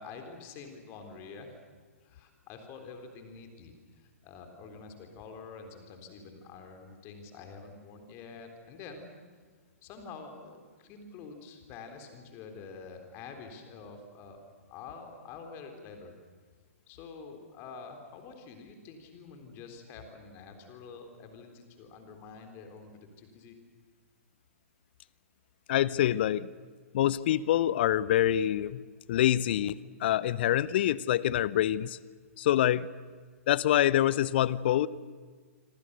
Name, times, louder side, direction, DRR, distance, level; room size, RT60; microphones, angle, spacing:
voice 1, 0.0-1.6 2.0-9.1 9.8-14.4 14.7-16.1 16.9-23.6, left 4 dB, 30° left, 5 dB, 3.6 m, -47 dB
voice 2, 25.7-26.5 26.9-28.8 29.1-32.0 32.4-32.9 33.5-34.9, left 12 dB, 45° left, 20 dB, 0.8 m, -26 dB
26.5 x 26.5 x 6.7 m, 1.5 s
figure-of-eight pair, 115°, 8 cm